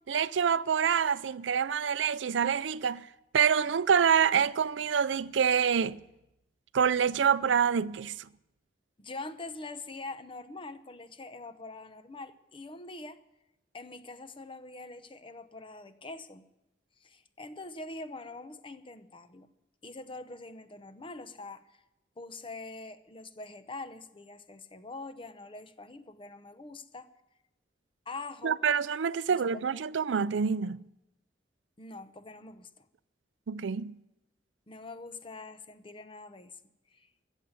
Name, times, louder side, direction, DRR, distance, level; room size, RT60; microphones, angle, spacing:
voice 1, 0.1-3.1 3.3-6.0 6.7-8.1 28.4-30.8 33.5-33.9, right 7 dB, 80° right, 0.4 m, -26 dB
voice 2, 9.0-13.2 13.7-16.4 17.0-19.5 19.8-21.6 22.2-27.1 28.1-28.6 29.3-29.8 31.8-32.8 34.7-36.5 36.9-37.1, left 2 dB, 30° left, 0.8 m, -44 dB
14.5 x 8.2 x 9.6 m
head